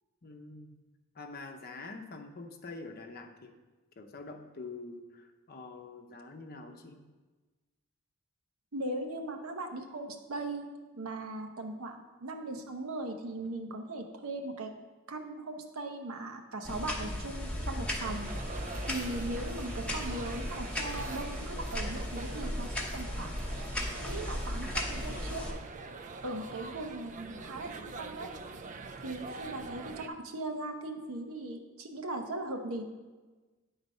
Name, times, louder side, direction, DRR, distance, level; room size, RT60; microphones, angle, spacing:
voice 1, 0.2-0.8 1.1-3.5 4.0-7.0, left 3 dB, 45° left, 4 dB, 0.7 m, -45 dB
voice 2, 8.7-14.7 15.1-18.3 18.8-23.3 23.9-25.4 26.2-28.3 29.0-32.8, right 2 dB, 85° right, 4 dB, 0.9 m, -39 dB
sound 1, 16.6-25.5, left 1 dB, 5° left, 0.8 m, -36 dB
sound 2, 18.0-30.1, right 4 dB, 35° right, 0.4 m, -44 dB
9.3 x 4.0 x 5.4 m, 1.3 s
head